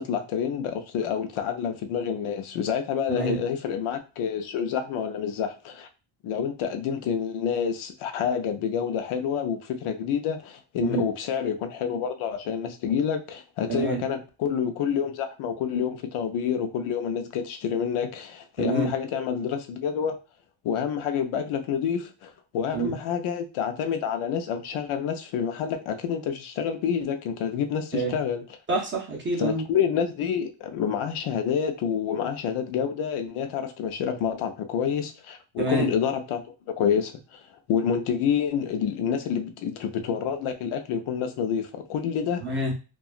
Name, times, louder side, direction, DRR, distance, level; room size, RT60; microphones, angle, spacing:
voice 1, 0.0-5.9 6.2-20.2 20.6-28.4 29.4-36.4 36.8-37.4 37.7-42.4, left 7 dB, 80° left, 7 dB, 0.6 m, -28 dB
voice 2, 3.1-3.4 10.8-11.0 13.7-14.0 18.6-18.9 22.7-23.0 27.9-28.1 28.7-29.6 35.6-35.9 42.4-42.7, right 3 dB, 25° right, -1 dB, 0.5 m, -27 dB
2.8 x 2.3 x 2.4 m, 0.32 s
cardioid pair, 170°, 49 cm